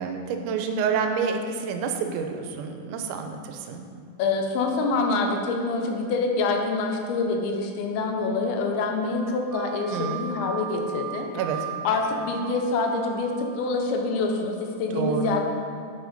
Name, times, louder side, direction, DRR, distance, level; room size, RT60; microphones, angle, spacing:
voice 1, 0.0-3.9 9.9-10.2 11.4-11.6 14.9-15.4, right 6 dB, 85° right, 5 dB, 3.0 m, -28 dB
voice 2, 4.2-11.3 11.8-15.4, left 3 dB, 80° left, 2 dB, 3.2 m, -26 dB
sound 1, 9.5-14.3, right 8 dB, 65° right, 1.3 m, -38 dB
9.7 x 8.8 x 4.0 m, 2.3 s
omnidirectional pair, 5.2 m